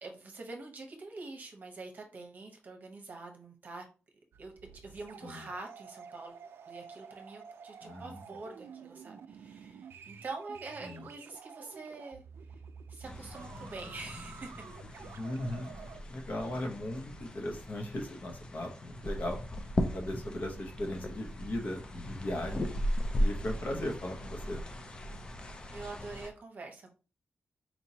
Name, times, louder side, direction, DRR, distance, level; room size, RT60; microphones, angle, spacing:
voice 1, 0.0-3.9 4.4-6.4 6.7-12.2 12.5-12.6 12.9-15.1 25.7-26.9, right 3 dB, 45° right, 2 dB, 0.9 m, -45 dB
sound 1, 4.3-16.0, right 6 dB, 75° right, 0.3 m, -50 dB
voice 2, 7.8-8.2 10.8-11.1 15.2-15.8 16.0-19.4 19.9-22.7 23.2-24.6, left 1 dB, 45° left, 2 dB, 0.9 m, -37 dB
sound 2, 13.0-26.3, equal, 25° left, 0.5 m, -37 dB
4.4 x 2.9 x 2.7 m, 0.35 s
wide cardioid pair, 160°, 4 cm